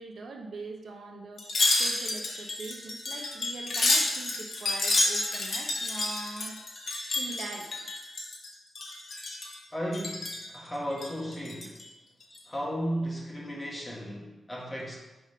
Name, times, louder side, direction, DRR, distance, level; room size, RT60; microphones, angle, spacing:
voice 1, 0.0-1.4 1.8-6.6 7.2-7.7, right 3 dB, 70° right, 2 dB, 0.7 m, -42 dB
Wind chime, 1.4-8.5 8.8-9.6 9.9-10.5 10.9-11.8 12.2-12.4, left 2 dB, 55° left, 1.1 m, -29 dB
voice 2, 9.7-11.8 12.5-15.0, equal, 15° left, -3 dB, 1.4 m, -35 dB
5.0 x 3.6 x 5.4 m, 1.1 s
wide cardioid pair, 105°, 0 cm